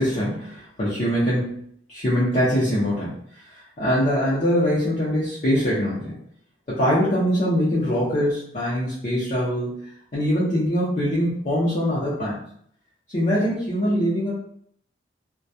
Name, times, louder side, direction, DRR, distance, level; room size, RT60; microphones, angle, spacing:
voice 1, 0.0-6.2 6.7-12.4 13.1-14.3, equal, 40° left, -9 dB, 0.6 m, -23 dB
2.2 x 2.2 x 2.6 m, 0.66 s
head